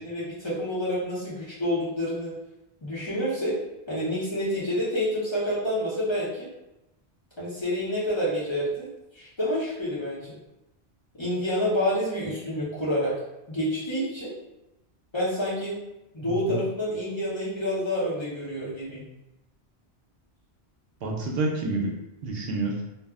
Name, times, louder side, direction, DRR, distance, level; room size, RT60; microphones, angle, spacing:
voice 1, 0.0-2.3 2.8-3.6 3.9-6.5 7.4-8.9 9.1-10.3 11.2-13.1 13.5-14.3 15.1-15.8 16.1-19.0, equal, 30° left, -9 dB, 0.7 m, -28 dB
voice 2, 16.2-16.6 21.0-21.9 22.2-22.8, right 3 dB, 70° right, -1 dB, 0.7 m, -28 dB
2.3 x 2.0 x 3.4 m, 0.93 s
omnidirectional pair, 1.1 m